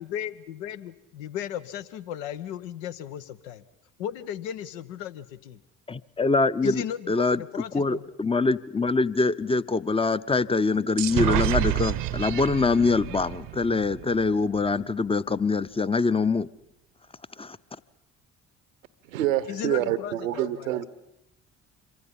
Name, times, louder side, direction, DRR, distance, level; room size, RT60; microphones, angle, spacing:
voice 1, 0.0-3.6 4.0-5.6 6.6-8.0 19.5-20.8, left 10 dB, 70° left, 1.1 m, -35 dB
voice 2, 5.9-7.4 7.7-16.5 17.4-17.6, left 3 dB, 15° left, 0.8 m, -24 dB
sound 1, 11.0-14.7, right 14 dB, 55° right, 0.9 m, -29 dB
voice 3, 19.1-20.8, right 12 dB, 75° right, 1.1 m, -27 dB
26.5 x 23.5 x 5.6 m
figure-of-eight pair, 45°, 40 cm